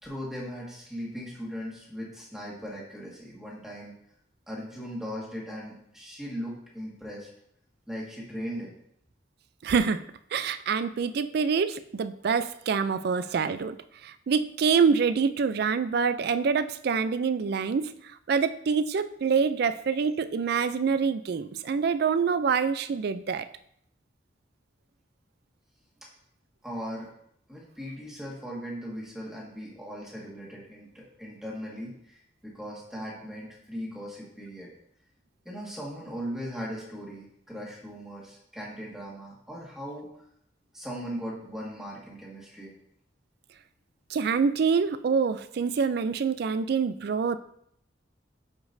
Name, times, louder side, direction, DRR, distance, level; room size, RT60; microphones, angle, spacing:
voice 1, 0.0-3.9 4.5-7.3 7.9-8.7 26.6-27.1 27.5-34.7 35.4-40.1 40.7-42.7, equal, 5° right, -4 dB, 1.7 m, -38 dB
voice 2, 9.6-17.9 18.3-23.5 44.1-47.4, right 5 dB, 55° right, 12 dB, 0.4 m, -26 dB
9.7 x 5.1 x 2.6 m, 0.72 s
head